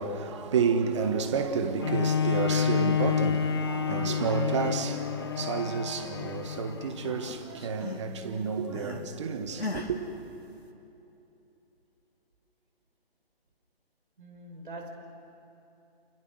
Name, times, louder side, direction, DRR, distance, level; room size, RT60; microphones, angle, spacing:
voice 1, 0.0-10.0, right 5 dB, 30° right, 1.6 m, -30 dB
Bowed string instrument, 1.8-7.4 8.1-8.2, left 7 dB, 25° left, 0.8 m, -29 dB
sound 1, 4.3-4.9 5.2-6.6 6.9-9.1 9.6-10.0, left 2 dB, 80° left, 2.9 m, -40 dB
voice 2, 14.2-14.9, right 2 dB, 55° right, 5.3 m, -43 dB
29.0 x 29.0 x 6.4 m
figure-of-eight pair, 145°, 31 cm